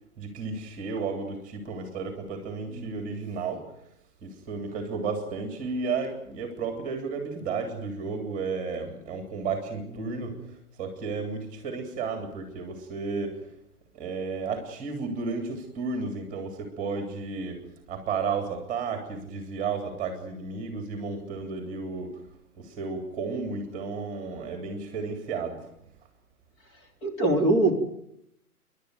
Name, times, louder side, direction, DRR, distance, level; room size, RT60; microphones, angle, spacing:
voice 1, 0.2-3.6 4.2-10.4 10.8-13.4 13.9-17.6 17.9-22.1 22.6-25.7, right 4 dB, 15° right, 5 dB, 3.2 m, -33 dB
voice 2, 10.0-10.4 27.0-27.7, right 2 dB, 20° left, 1 dB, 3.8 m, -24 dB
29.0 x 12.0 x 9.3 m, 0.76 s
figure-of-eight pair, 135°, 45 cm